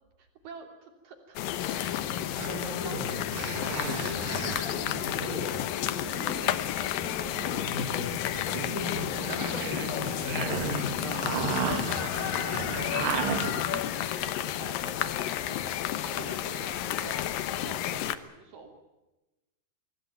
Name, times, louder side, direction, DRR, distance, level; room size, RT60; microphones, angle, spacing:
voice 1, 0.2-2.2 2.5-4.2 9.8-10.6 12.0-12.7 13.1-18.7, right 5 dB, 75° right, 4 dB, 4.7 m, -47 dB
sound 1, 1.4-18.2, left 12 dB, 85° left, 2.7 m, -31 dB
voice 2, 2.1-3.2 4.0-11.4, left 1 dB, 20° left, 2 dB, 7.0 m, -39 dB
sound 2, 2.4-5.3 8.3-13.8, right 6 dB, 45° right, 2.1 m, -34 dB
Writing, 6.3-9.5 10.0-11.8 12.1-12.9 13.9-14.4 14.8-15.2 15.9-16.4 16.8-17.4, equal, ahead, 4.5 m, -52 dB
24.5 x 17.0 x 9.4 m, 1.0 s
omnidirectional pair, 4.0 m